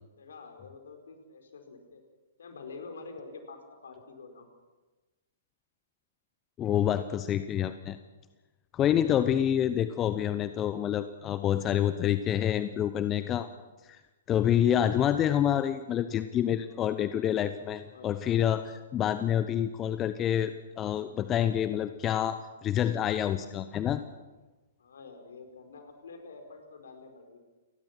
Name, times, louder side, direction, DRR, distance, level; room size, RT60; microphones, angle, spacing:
voice 1, 0.2-2.0 2.4-4.5 14.5-14.7 17.8-18.5 24.8-27.4, left 4 dB, 65° left, 5 dB, 4.8 m, -47 dB
voice 2, 6.6-8.0 8.7-13.5 13.8-14.0 14.3-24.0, left 10 dB, 25° left, 12 dB, 0.9 m, -27 dB
29.0 x 20.0 x 6.0 m, 1.2 s
figure-of-eight pair, 115°, 0 cm